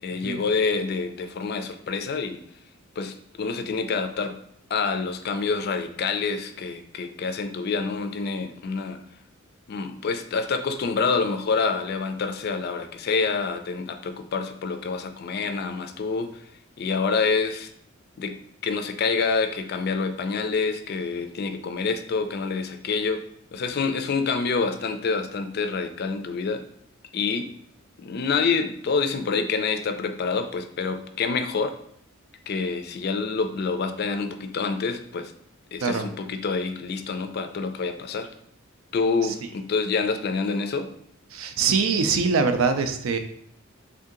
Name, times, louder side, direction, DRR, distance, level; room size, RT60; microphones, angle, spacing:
voice 1, 0.0-2.4 3.0-4.4 4.7-9.0 9.7-16.4 16.8-17.7 18.2-18.4 18.6-26.6 27.1-27.5 28.0-31.7 32.5-35.3 35.7-38.3 38.9-40.9, left 4 dB, 50° left, 7 dB, 0.3 m, -27 dB
voice 2, 41.3-43.2, right 5 dB, 80° right, 8 dB, 0.4 m, -23 dB
3.6 x 2.7 x 3.7 m, 0.69 s
head